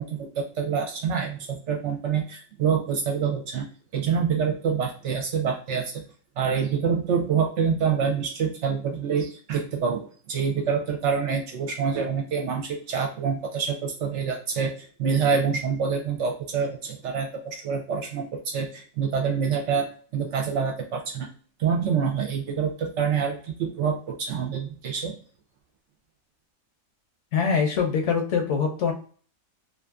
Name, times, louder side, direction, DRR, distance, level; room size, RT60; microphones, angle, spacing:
voice 1, 0.0-3.6 3.9-5.9 6.4-21.3 21.6-25.1, right 6 dB, 65° right, 1 dB, 0.8 m, -26 dB
voice 2, 27.3-28.9, left 6 dB, 65° left, 2 dB, 0.9 m, -23 dB
2.6 x 2.4 x 2.2 m, 0.43 s
omnidirectional pair, 1.5 m